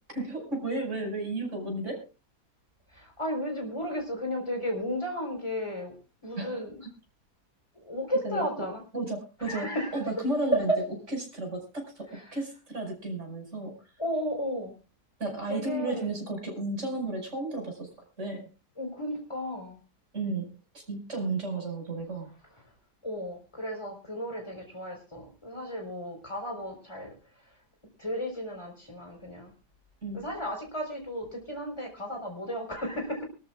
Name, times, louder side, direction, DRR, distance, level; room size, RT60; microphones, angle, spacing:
voice 1, 0.1-2.1 6.4-6.9 8.2-8.6 8.9-10.7 11.3-13.8 15.2-17.9 18.2-18.5 20.1-22.3 30.0-30.2, right 2 dB, 45° right, 2 dB, 5.7 m, -33 dB
voice 2, 2.9-5.9 6.2-6.8 7.8-8.8 9.4-10.0 10.7-10.8 14.0-14.7 15.5-16.1 18.8-19.8 23.0-27.1 28.0-29.5 30.1-33.3, equal, 15° left, 3 dB, 3.9 m, -34 dB
24.0 x 13.5 x 2.4 m, 0.30 s
omnidirectional pair, 1.8 m